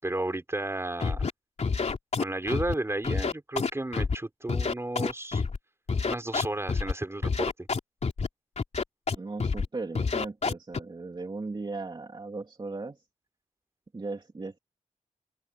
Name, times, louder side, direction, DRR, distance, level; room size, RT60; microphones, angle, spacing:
voice 1, 0.0-1.3 2.2-5.4 6.1-7.7, right 2 dB, 20° right, 5.5 m, -33 dB
Scratching (performance technique), 1.0-1.3 1.6-2.7 3.0-4.1 4.5-5.6 5.9-6.9 7.2-8.3 8.6-9.1 9.4-9.7 9.9-10.8, left 5 dB, 60° left, 3.1 m, -28 dB
voice 2, 9.2-13.0 13.9-14.6, right 3 dB, 35° right, 2.7 m, -37 dB
open air
cardioid pair, 70°, 13 cm